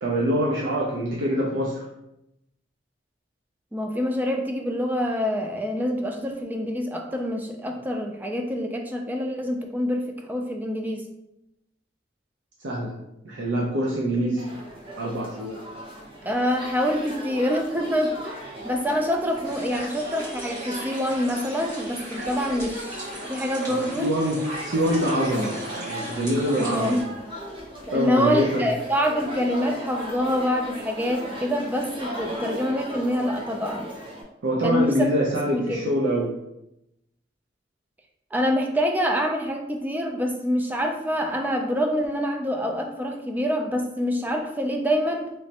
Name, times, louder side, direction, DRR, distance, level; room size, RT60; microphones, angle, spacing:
voice 1, 0.0-1.8 12.6-12.9 13.2-14.5 15.0-15.6 23.7-27.0 27.9-28.7 34.4-36.3, equal, 85° right, -3 dB, 0.6 m, -25 dB
voice 2, 3.7-11.1 16.2-24.1 26.6-27.1 27.9-33.9 34.6-35.1 35.5-35.8 38.3-45.3, equal, 10° right, 3 dB, 0.3 m, -26 dB
sound 1, 14.4-34.2, right 1 dB, 30° right, 0.8 m, -37 dB
sound 2, 19.4-27.0, right 1 dB, 50° right, 1.5 m, -39 dB
3.1 x 3.1 x 2.8 m, 0.85 s
head